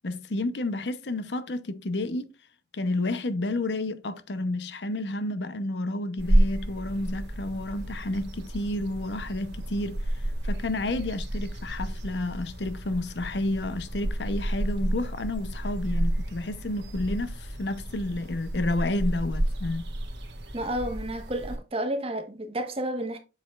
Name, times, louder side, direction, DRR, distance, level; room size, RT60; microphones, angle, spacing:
voice 1, 0.0-2.3 2.7-10.0 10.4-19.8, left 2 dB, 80° left, 0.8 m, -30 dB
sound 1, 6.2-21.6, right 1 dB, 80° right, 2.0 m, -31 dB
voice 2, 20.5-23.2, right 1 dB, 35° right, 1.3 m, -31 dB
7.6 x 6.6 x 2.4 m
head